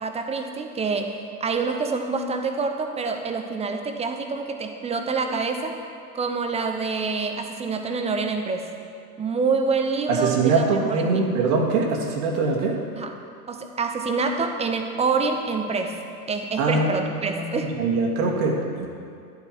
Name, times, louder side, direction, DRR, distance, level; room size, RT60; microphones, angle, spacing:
voice 1, 0.0-5.8 6.1-8.7 9.2-11.3 12.9-13.2 13.5-16.0 16.3-17.7, right 4 dB, 15° right, 5 dB, 0.9 m, -26 dB
voice 2, 10.1-12.8 16.6-16.9 17.2-18.9, right 4 dB, 65° right, 0 dB, 2.5 m, -23 dB
12.0 x 10.5 x 4.6 m, 2.4 s
hypercardioid pair, 120°, 47 cm